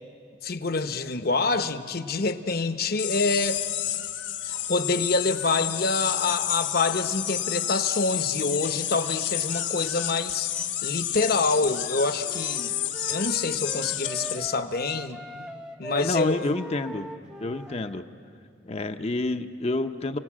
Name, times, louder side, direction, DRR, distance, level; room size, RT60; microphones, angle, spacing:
voice 1, 0.4-3.6 4.4-10.5 10.8-12.8 13.1-15.2 15.8-16.5, left 3 dB, 55° left, 9 dB, 0.9 m, -26 dB
sound 1, 3.0-14.5, left 12 dB, 90° left, 1.0 m, -30 dB
sound 2, 12.2-18.0, equal, 5° right, 0.6 m, -41 dB
voice 2, 16.0-17.1 17.4-18.0 18.6-20.2, left 2 dB, 35° left, 7 dB, 0.6 m, -28 dB
29.5 x 18.0 x 7.4 m, 2.3 s
head